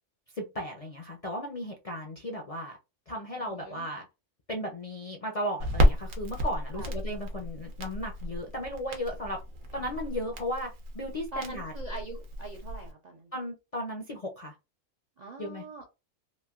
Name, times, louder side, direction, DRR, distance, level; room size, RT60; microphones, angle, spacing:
voice 1, 0.3-2.8 3.1-4.1 4.5-9.4 9.7-10.7 10.9-11.7 13.3-14.5 15.4-15.7, equal, 50° left, 0.4 m, -35 dB
voice 2, 3.4-3.9 6.7-6.9 11.3-13.3 15.2-15.9, right 2 dB, 55° right, 0.4 m, -43 dB
Crackle, 5.6-12.9, equal, 90° right, 1.2 m, -31 dB
3.2 x 2.6 x 2.3 m
omnidirectional pair, 1.3 m